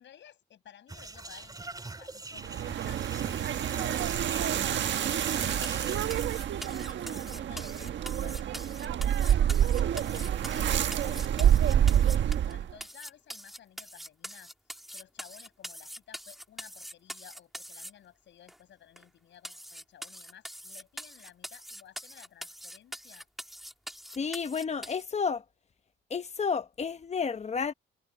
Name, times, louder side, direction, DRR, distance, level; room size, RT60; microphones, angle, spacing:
voice 1, 0.0-3.0 3.4-5.3 5.6-6.1 6.6-8.6 9.2-11.2 11.5-12.1 12.5-14.5 14.9-23.3, left 10 dB, 65° left, 7.2 m, -55 dB
sound 1, 0.9-6.1, right 2 dB, 20° right, 3.9 m, -43 dB
sound 2, 2.4-12.8, right 10 dB, 65° right, 1.4 m, -27 dB
sound 3, 5.6-12.5 12.8-17.9 18.5-18.6 19.0-19.1 19.4-25.0, equal, ahead, 2.4 m, -43 dB
voice 2, 24.1-25.4 26.1-27.7, left 5 dB, 35° left, 1.1 m, -31 dB
cardioid pair, 90°, 20 cm